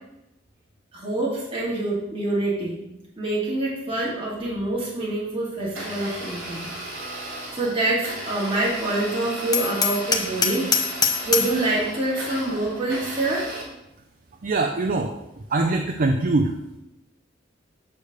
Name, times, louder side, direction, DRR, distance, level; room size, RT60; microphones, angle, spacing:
voice 1, 0.9-2.7 3.2-6.6 7.5-10.7 11.3-13.5, right 2 dB, 30° right, -6 dB, 2.0 m, -26 dB
Domestic sounds home sounds, 5.6-13.6, right 1 dB, 80° right, 3.1 m, -35 dB
Hammer, 9.5-11.6, left 6 dB, 20° left, 0.8 m, -23 dB
voice 2, 14.4-15.1 15.5-16.5, right 2 dB, 45° right, 4 dB, 0.5 m, -22 dB
8.6 x 3.3 x 6.5 m, 0.90 s
head